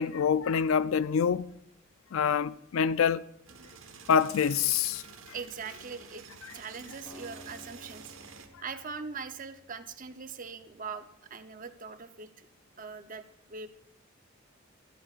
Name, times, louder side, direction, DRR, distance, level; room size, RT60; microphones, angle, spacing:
voice 1, 0.0-1.5 2.1-3.2 4.1-5.0, left 7 dB, 85° left, 0.4 m, -26 dB
sound 1, 3.5-8.5, right 6 dB, 75° right, 1.3 m, -49 dB
voice 2, 5.3-6.3 6.5-8.2 8.6-12.5 12.8-13.7, right 5 dB, 40° right, 0.7 m, -41 dB
Acoustic guitar, 7.0-10.2, equal, 10° left, 3.6 m, -53 dB
22.0 x 12.5 x 2.5 m
head